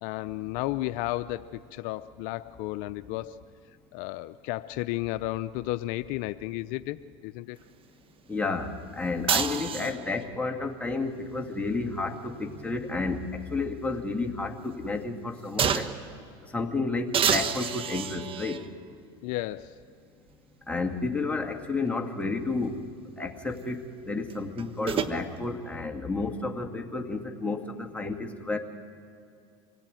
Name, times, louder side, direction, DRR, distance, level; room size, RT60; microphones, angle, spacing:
voice 1, 0.0-3.4 3.9-7.6 9.7-10.0 19.2-19.8, left 16 dB, 65° left, 12 dB, 0.6 m, -33 dB
voice 2, 8.3-15.9 16.5-18.6 20.7-22.7 23.2-28.6, left 3 dB, 10° left, 2 dB, 2.1 m, -31 dB
sound 1, 9.3-10.3 12.0-13.6 14.0-14.1 15.6-16.1 17.1-18.7 19.6-19.7 24.3-25.2, right 7 dB, 35° right, 1.2 m, -29 dB
26.0 x 18.0 x 9.1 m, 2.4 s
supercardioid pair, 105°, 15 cm